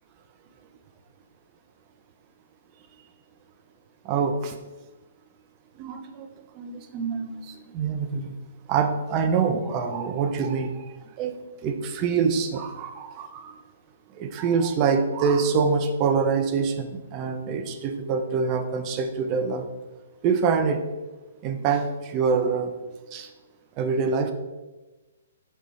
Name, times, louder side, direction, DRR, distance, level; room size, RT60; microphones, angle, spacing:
voice 1, 4.0-4.6 5.8-6.3 6.5-8.3 8.7-11.3 11.6-13.6 14.1-19.7 20.2-20.8 21.4-22.7 23.1-23.3 23.8-24.3, right 5 dB, 30° right, 6 dB, 0.3 m, -25 dB
4.0 x 2.2 x 4.4 m, 1.2 s
figure-of-eight pair, 120°, 0 cm